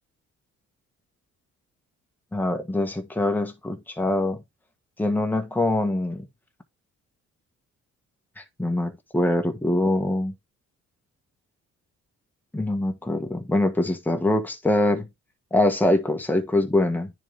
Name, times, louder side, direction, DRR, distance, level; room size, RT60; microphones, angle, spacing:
voice 1, 2.3-4.4 5.0-6.3 8.4-10.3 12.5-15.1 15.5-17.1, left 1 dB, 5° left, 1.5 m, -24 dB
9.9 x 4.1 x 3.5 m
cardioid pair, 90°, 30 cm